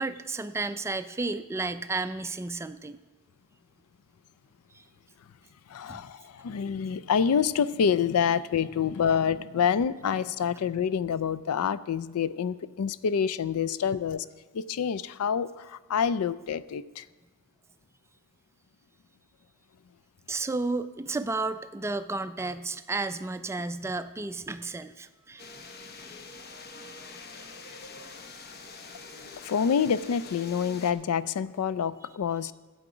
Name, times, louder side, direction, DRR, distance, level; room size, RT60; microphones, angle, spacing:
voice 1, 0.0-3.0 4.7-4.8 5.9-6.0 20.3-25.5, right 3 dB, 10° right, 10 dB, 0.3 m, -32 dB
voice 2, 5.7-14.3 14.5-17.1 29.2-32.5, left 7 dB, 80° left, 17 dB, 0.4 m, -27 dB
sound 1, 25.4-30.9, left 3 dB, 45° left, 0.8 m, -45 dB
12.0 x 7.9 x 4.9 m, 1.3 s
head